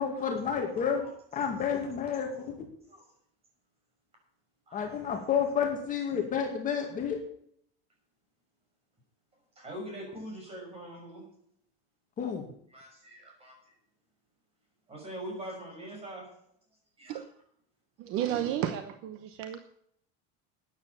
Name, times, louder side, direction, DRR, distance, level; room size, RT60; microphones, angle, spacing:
voice 1, 0.0-1.1 1.3-2.5 4.7-7.2 12.2-12.5, left 7 dB, 25° left, 2 dB, 2.1 m, -30 dB
voice 2, 0.9-1.7 2.1-2.4 2.8-3.1 4.7-5.3 9.6-11.3 12.7-13.7 14.9-16.3 17.0-17.2, right 1 dB, 20° right, 1 dB, 6.2 m, -44 dB
voice 3, 18.0-19.7, right 11 dB, 50° right, 9 dB, 1.1 m, -32 dB
13.0 x 9.7 x 6.9 m, 0.68 s
cardioid pair, 160°, 29 cm